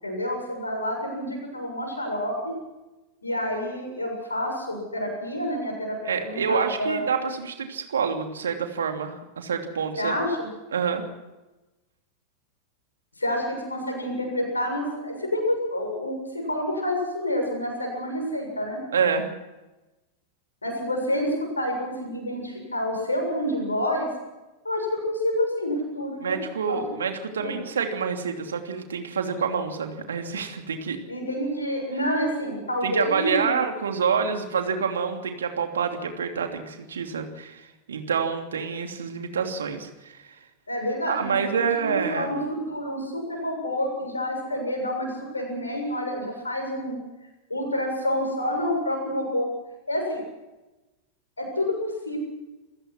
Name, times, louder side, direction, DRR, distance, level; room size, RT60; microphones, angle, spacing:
voice 1, 0.0-2.5 3.2-7.0 10.0-10.5 13.2-18.8 20.6-24.1 24.6-26.4 26.7-26.8 27.4-27.6 31.1-33.6 40.7-47.0 47.5-49.5 49.9-50.2 51.4-52.2, left 1 dB, 80° left, 3 dB, 7.1 m, -28 dB
voice 2, 6.1-10.2 10.7-11.0 18.9-19.3 26.2-31.0 32.8-40.3 41.1-42.3, right 6 dB, 65° right, 5 dB, 2.9 m, -27 dB
27.5 x 15.5 x 6.2 m, 1.1 s
figure-of-eight pair, 90°, 0 cm